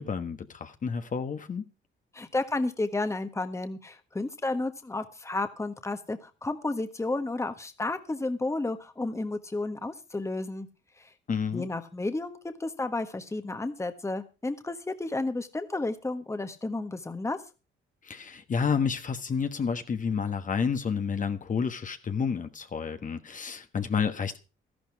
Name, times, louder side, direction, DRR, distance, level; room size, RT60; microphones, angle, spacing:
voice 1, 0.0-1.6 11.3-11.6 18.0-24.4, left 6 dB, 40° left, 1.4 m, -30 dB
voice 2, 2.1-10.7 11.0-11.1 11.5-17.4, left 2 dB, 15° left, 1.4 m, -32 dB
13.0 x 11.5 x 4.7 m
cardioid pair, 90°, 20 cm